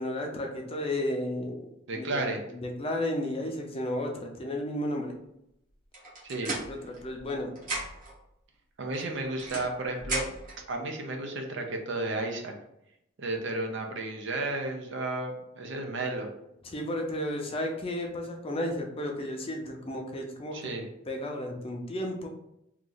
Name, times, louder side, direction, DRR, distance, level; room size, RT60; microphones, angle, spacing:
voice 1, 0.0-1.5 1.9-2.2 2.5-5.1 6.7-7.5 16.6-20.7 21.1-22.3, left 1 dB, 30° left, 2 dB, 0.5 m, -33 dB
voice 2, 1.9-2.4 6.2-6.5 8.8-10.3 10.7-12.5 13.2-16.3 20.5-20.9, right 2 dB, 60° right, 4 dB, 0.6 m, -33 dB
sound 1, 5.9-7.3 7.6-8.2 8.9-10.6, right 2 dB, 45° right, 1.1 m, -36 dB
3.0 x 2.5 x 3.8 m, 0.80 s
head